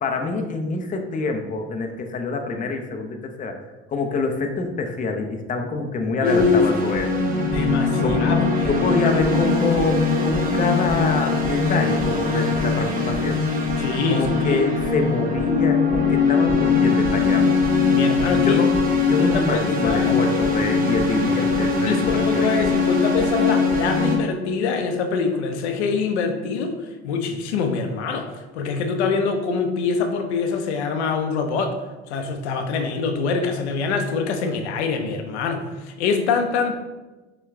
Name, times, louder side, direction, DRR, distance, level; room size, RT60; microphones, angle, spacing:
voice 1, 0.0-3.6 3.9-7.1 8.0-8.2 8.7-13.4 14.1-17.6 18.4-18.7 19.1-22.2 22.5-22.7, left 3 dB, 25° left, 4 dB, 0.6 m, -25 dB
voice 2, 6.2-6.6 7.4-8.8 9.0-9.1 13.8-14.6 17.9-18.6 19.2-20.2 21.9-26.8 27.0-31.7 32.1-36.7, left 5 dB, 80° left, 5 dB, 0.6 m, -24 dB
sound 1, 6.2-24.2, left 4 dB, 25° right, 1.0 m, -21 dB
5.6 x 2.2 x 3.5 m, 1.2 s
hypercardioid pair, 75°, 33 cm